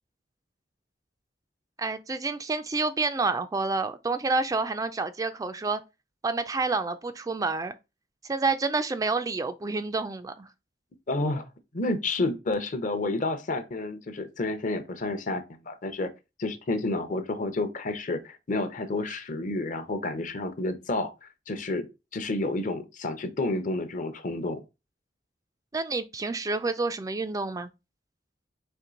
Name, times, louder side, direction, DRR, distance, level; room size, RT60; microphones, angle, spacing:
voice 1, 1.8-5.8 6.2-7.7 8.2-10.5 25.7-27.7, right 3 dB, 20° right, 0.3 m, -28 dB
voice 2, 11.1-11.5 11.7-16.1 16.4-21.9 22.1-24.6, left 2 dB, 45° left, 0.7 m, -30 dB
4.4 x 3.1 x 3.8 m
head